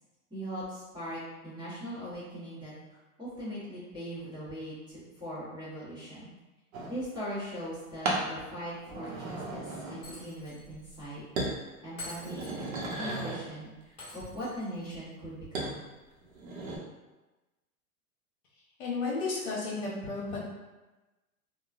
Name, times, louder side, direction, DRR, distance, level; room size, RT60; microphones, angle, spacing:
voice 1, 0.3-2.7 3.2-6.3 6.9-11.2 11.8-15.8, equal, 10° right, -12 dB, 1.1 m, -40 dB
sound 1, 6.7-7.0 8.0-8.3 8.8-10.3 10.6-11.0 11.4-11.6 12.0-13.5 15.5-15.7 16.2-16.8, right 2 dB, 65° right, 0.9 m, -35 dB
Shatter, 10.0-10.7 10.9-11.0 12.0-13.0 14.0-15.0, left 2 dB, 15° left, 1.3 m, -46 dB
voice 2, 18.8-20.4, left 3 dB, 55° left, -5 dB, 1.1 m, -33 dB
2.9 x 2.2 x 2.4 m, 1.1 s
hypercardioid pair, 135°, 45 cm